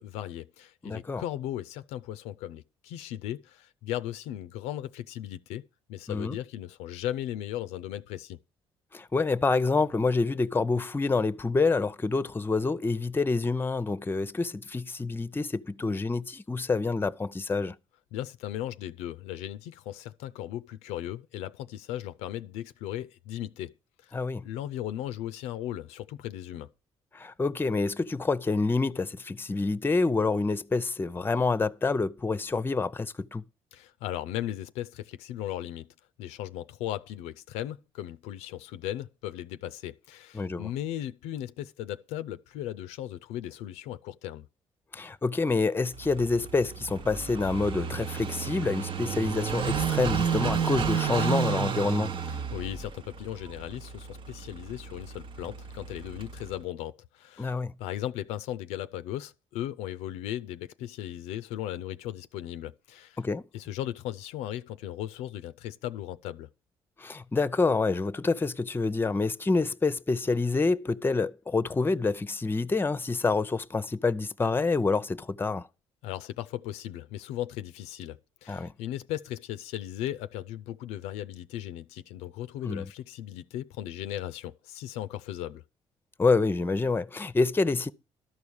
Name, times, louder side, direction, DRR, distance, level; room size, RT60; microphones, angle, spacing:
voice 1, 0.0-5.6 5.9-8.4 18.1-23.7 24.0-24.1 24.4-26.7 33.7-35.9 36.2-44.5 52.3-63.2 63.5-66.5 76.0-85.6, left 12 dB, 85° left, 0.5 m, -37 dB
voice 2, 0.8-1.2 6.1-6.4 8.9-17.7 24.1-24.4 27.1-33.4 40.3-40.7 44.9-52.1 57.4-57.7 63.2-63.5 67.0-75.7 78.5-78.7 82.6-82.9 86.2-87.9, left 3 dB, 20° left, 0.6 m, -27 dB
Car passing by / Idling, 45.9-56.6, right 7 dB, 50° right, 0.8 m, -32 dB
12.5 x 4.8 x 7.0 m
supercardioid pair, 70°, 11 cm